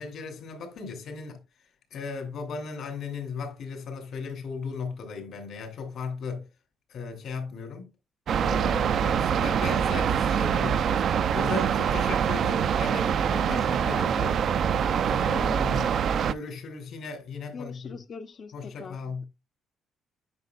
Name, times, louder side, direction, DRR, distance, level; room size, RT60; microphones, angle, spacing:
voice 1, 0.0-1.4 1.9-6.4 6.9-7.9 8.4-14.4 15.1-15.9 16.3-18.0 18.5-19.2, left 5 dB, 65° left, 2.9 m, -37 dB
sound 1, 8.3-16.3, right 8 dB, 60° right, 0.4 m, -25 dB
voice 2, 8.6-9.0 13.5-13.6 13.8-14.6 15.3-16.0 17.5-19.2, left 5 dB, 45° left, 0.7 m, -42 dB
9.5 x 5.6 x 2.4 m
cardioid pair, 95°, 0 cm